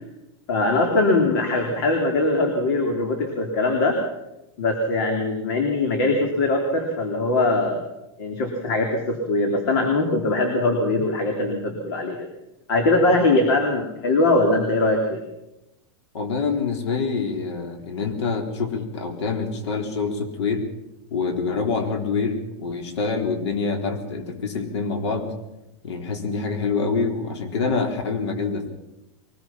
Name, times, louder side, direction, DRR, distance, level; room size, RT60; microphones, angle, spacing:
voice 1, 0.5-4.0 4.6-7.8 8.2-12.3 12.7-15.2, left 2 dB, 55° left, 3 dB, 3.4 m, -21 dB
voice 2, 16.1-20.6 21.1-25.3 25.8-28.7, left 4 dB, 85° left, 5 dB, 4.0 m, -26 dB
23.5 x 19.5 x 5.9 m, 0.95 s
supercardioid pair, 170°, 14 cm